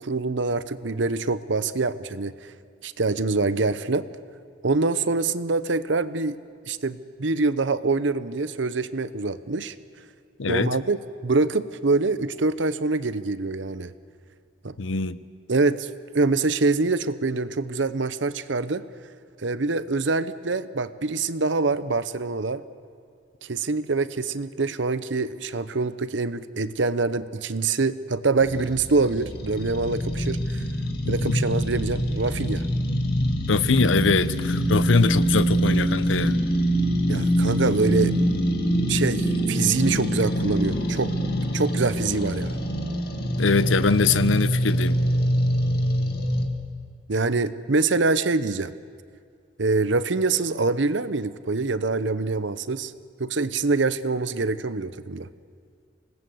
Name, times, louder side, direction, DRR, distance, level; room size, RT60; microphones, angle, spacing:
voice 1, 0.0-2.5 2.8-4.1 4.6-6.4 6.7-9.7 10.5-11.0 11.2-13.9 14.6-14.7 15.5-15.9 16.1-18.8 19.4-22.6 23.4-30.6 31.1-32.6 37.1-38.5 38.9-41.1 41.5-42.6 47.1-48.7 49.6-52.9 53.2-55.3, right 3 dB, 75° right, 14 dB, 0.9 m, -25 dB
voice 2, 10.4-10.8 14.8-15.2 31.0-31.3 33.5-36.4 43.4-45.0, left 4 dB, 85° left, 15 dB, 0.7 m, -22 dB
sound 1, 28.4-46.5, equal, 55° left, 2.1 m, -24 dB
26.0 x 19.0 x 7.9 m, 2.2 s
head